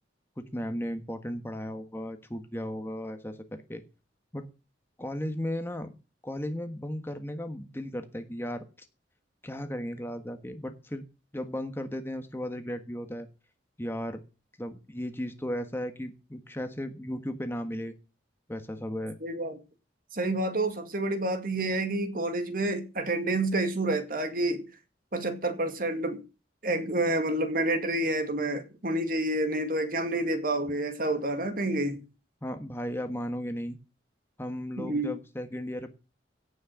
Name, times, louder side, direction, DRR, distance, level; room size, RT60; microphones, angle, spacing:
voice 1, 0.4-3.8 4.3-4.5 5.0-5.9 6.2-8.6 9.4-11.0 11.3-13.3 13.8-14.2 14.6-17.9 18.5-19.2 32.4-33.8 34.4-35.9, equal, 10° left, 1.4 m, -35 dB
voice 2, 19.2-19.6 20.1-24.6 25.1-26.2 26.6-32.0 34.8-35.1, right 1 dB, 50° right, 2.1 m, -29 dB
17.0 x 6.4 x 6.3 m
head